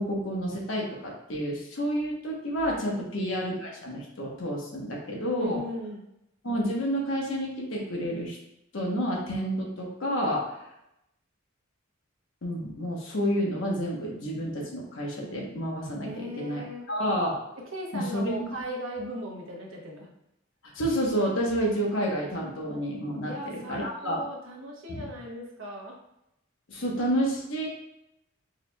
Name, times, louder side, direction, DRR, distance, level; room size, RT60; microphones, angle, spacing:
voice 1, 0.0-5.6 6.4-8.4 8.7-10.4 12.4-17.4 17.9-18.5 20.7-24.2 24.9-25.1 26.7-27.7, equal, 75° left, -2 dB, 1.0 m, -29 dB
voice 2, 5.4-6.0 16.0-16.8 17.7-20.1 23.2-26.0, equal, 90° right, -1 dB, 0.9 m, -37 dB
4.8 x 2.9 x 2.2 m, 0.83 s
head